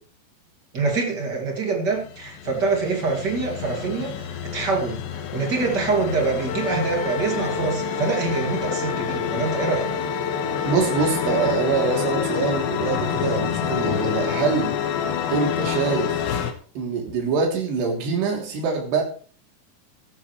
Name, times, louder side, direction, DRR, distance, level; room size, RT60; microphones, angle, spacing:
voice 1, 0.7-9.9, right 4 dB, 30° right, 2 dB, 2.1 m, -25 dB
sound 1, 1.9-16.5, left 8 dB, 75° left, 3.2 m, -28 dB
Wind instrument woodwind instrument, 6.5-11.6, left 3 dB, 60° left, 2.2 m, -30 dB
voice 2, 10.6-16.2 16.7-19.0, right 5 dB, 70° right, 0 dB, 5.1 m, -24 dB
14.0 x 13.0 x 3.2 m, 0.42 s
omnidirectional pair, 5.0 m